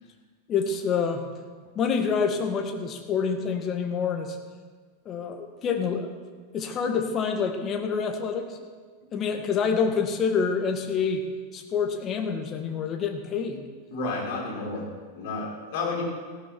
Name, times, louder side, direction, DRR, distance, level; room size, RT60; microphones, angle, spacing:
voice 1, 0.5-1.3 1.8-4.4 5.1-6.1 6.5-8.6 9.1-11.2 11.5-13.6, left 6 dB, 30° left, 5 dB, 1.9 m, -27 dB
voice 2, 13.9-14.8 15.1-16.0, left 3 dB, 50° left, -4 dB, 5.9 m, -31 dB
18.0 x 15.0 x 4.6 m, 1.5 s
figure-of-eight pair, 90°, 0 cm